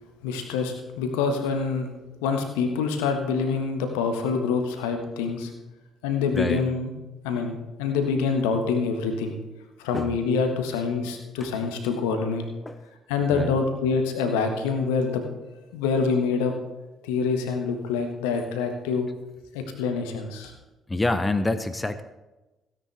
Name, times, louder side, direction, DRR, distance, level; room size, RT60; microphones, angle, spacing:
voice 1, 0.2-1.9 2.2-5.5 6.0-6.9 7.2-9.4 9.8-12.5 13.1-15.2 15.7-16.5 17.0-19.1 19.5-20.5, left 5 dB, 70° left, 6 dB, 1.4 m, -26 dB
voice 2, 6.3-6.7 9.9-10.2 11.4-11.5 12.7-12.8 13.3-13.5 20.9-22.0, left 2 dB, 15° left, 11 dB, 0.8 m, -27 dB
16.0 x 10.0 x 3.4 m, 1.1 s
figure-of-eight pair, 45°, 0 cm